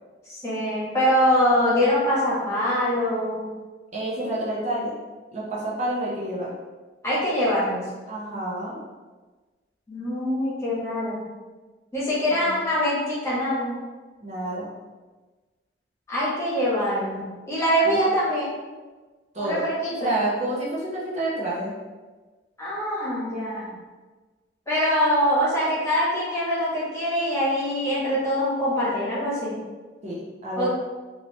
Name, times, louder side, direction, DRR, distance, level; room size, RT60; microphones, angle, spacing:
voice 1, 0.3-3.5 7.0-7.8 9.9-11.3 11.9-13.7 16.1-18.5 19.4-20.1 22.6-23.7 24.7-29.6 30.6-30.7, equal, 15° left, -8 dB, 1.2 m, -24 dB
voice 2, 3.9-4.9 5.3-6.5 8.1-8.8 12.3-12.5 14.2-14.7 17.8-18.0 19.3-19.6 20.0-21.7 30.0-30.7, right 1 dB, 40° right, -6 dB, 0.7 m, -29 dB
3.1 x 2.8 x 3.1 m, 1.3 s
head